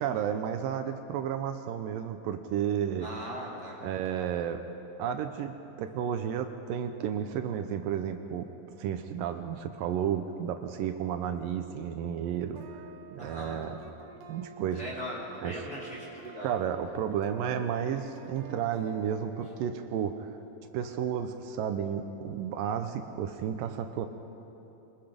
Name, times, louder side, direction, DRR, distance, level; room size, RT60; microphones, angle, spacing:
voice 1, 0.0-3.1 3.8-4.6 5.0-8.5 8.8-12.8 13.1-13.8 14.3-14.8 15.4-15.6 16.4-20.4 20.7-24.1, right 8 dB, 80° right, 7 dB, 2.4 m, -32 dB
voice 2, 3.0-3.8 13.2-13.6 14.7-16.5, equal, 20° left, -7 dB, 4.2 m, -39 dB
sound 1, 12.6-20.0, right 5 dB, 65° right, 2.1 m, -50 dB
24.5 x 20.5 x 5.2 m, 3.0 s
omnidirectional pair, 4.0 m